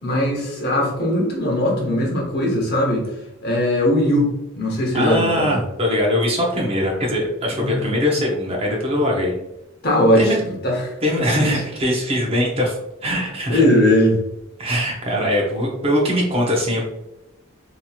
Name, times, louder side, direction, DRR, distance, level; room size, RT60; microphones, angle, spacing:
voice 1, 0.0-3.1 3.4-5.6 7.5-7.8 9.8-10.9 11.4-11.5 13.5-14.2, left 1 dB, 50° left, -2 dB, 0.9 m, -19 dB
voice 2, 4.9-9.4 10.2-10.4 11.0-13.6 14.6-16.8, left 1 dB, 30° right, -1 dB, 0.6 m, -21 dB
2.8 x 2.8 x 2.3 m, 0.90 s
head